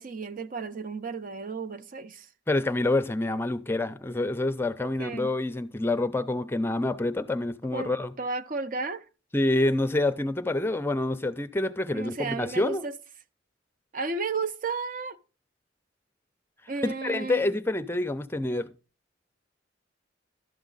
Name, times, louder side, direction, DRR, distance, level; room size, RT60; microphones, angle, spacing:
voice 1, 0.0-2.3 4.8-5.3 7.7-9.1 11.9-13.0 13.9-15.2 16.7-17.5, right 4 dB, 45° right, 0.6 m, -33 dB
voice 2, 2.5-8.1 9.3-12.8 16.8-18.7, left 2 dB, 10° left, 0.5 m, -27 dB
12.0 x 7.2 x 3.9 m
head